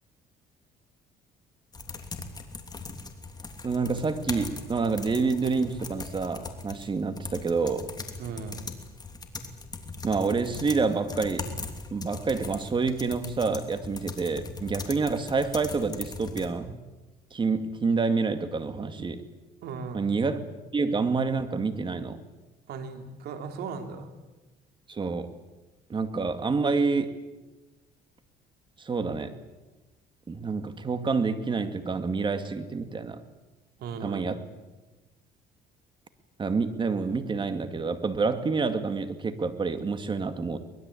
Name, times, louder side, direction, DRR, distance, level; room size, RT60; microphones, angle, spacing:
sound 1, 1.7-16.5, left 3 dB, 25° left, 3.1 m, -40 dB
voice 1, 3.6-7.9 10.0-11.5 11.9-16.8 17.3-19.2 19.9-20.4 20.7-22.2 24.9-25.3 25.9-27.2 28.8-29.4 30.3-33.2 34.0-34.4 36.4-40.6, right 4 dB, 30° right, 9 dB, 2.3 m, -28 dB
voice 2, 8.2-8.6 19.6-20.0 22.7-24.1 33.8-34.2, right 5 dB, 70° right, 5 dB, 3.6 m, -37 dB
24.0 x 21.0 x 8.6 m, 1.1 s
cardioid pair, 110°, 17 cm